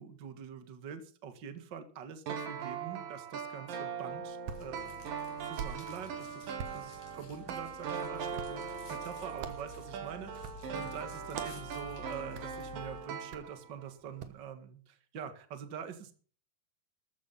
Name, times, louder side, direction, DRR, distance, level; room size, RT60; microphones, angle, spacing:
voice 1, 0.0-5.0 5.4-6.4 6.7-16.1, right 7 dB, 40° right, 8 dB, 1.9 m, -45 dB
sound 1, 2.3-13.9 14.2-14.3, right 6 dB, 85° right, 3.7 m, -40 dB
Hands, 4.1-14.4, right 7 dB, 65° right, 2.5 m, -49 dB
sound 2, 4.5-13.0, left 7 dB, 70° left, 4.5 m, -52 dB
14.0 x 12.0 x 5.7 m, 0.43 s
omnidirectional pair, 3.9 m